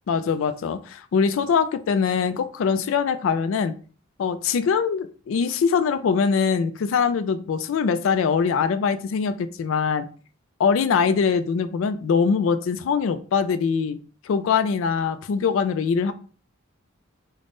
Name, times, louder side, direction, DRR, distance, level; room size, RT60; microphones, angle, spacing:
voice 1, 0.1-3.7 4.2-10.1 10.6-14.0 14.2-16.1, left 6 dB, 70° left, 11 dB, 0.3 m, -22 dB
3.4 x 2.1 x 3.7 m, 0.39 s
head